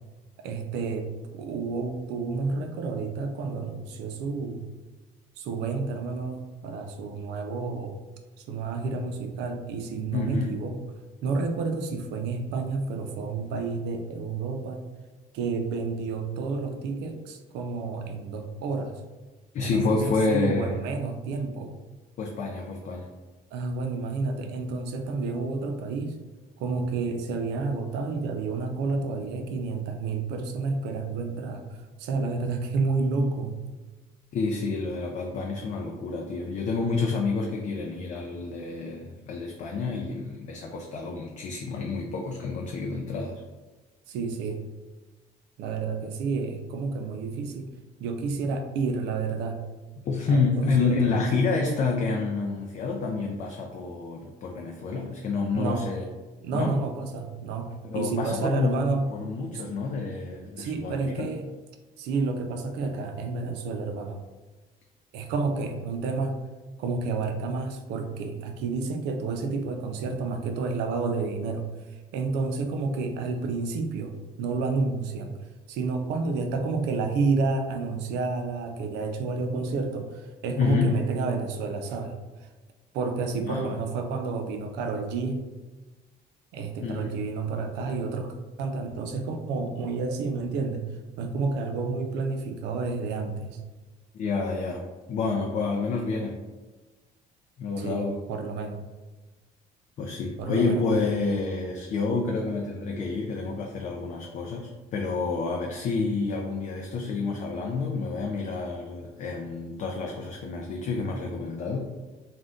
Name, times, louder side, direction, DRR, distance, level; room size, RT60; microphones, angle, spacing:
voice 1, 0.4-4.7 5.4-8.0 8.5-10.8 11.2-14.8 15.3-19.0 19.6-21.8 23.5-26.2 26.6-31.6 32.0-33.6 44.1-44.6 45.6-47.7 48.0-49.6 50.3-51.3 55.5-55.9 56.4-59.1 59.5-59.6 60.6-61.5 62.0-64.2 65.1-66.4 66.8-71.7 72.1-75.3 75.7-82.2 82.9-85.4 86.5-88.3 88.6-90.9 91.2-93.6 97.8-98.8 100.4-100.8, right 4 dB, 90° right, 5 dB, 0.4 m, -30 dB
voice 2, 10.1-10.5 19.5-20.8 22.2-23.1 34.3-43.4 50.0-56.0 56.5-56.8 57.8-61.3 80.6-81.0 83.5-83.7 86.8-87.1 94.1-94.8 95.1-96.4 97.6-98.2 100.0-111.8, left 4 dB, 50° left, 0 dB, 0.4 m, -28 dB
2.5 x 2.2 x 3.5 m, 1.2 s
cardioid pair, 110°, 17 cm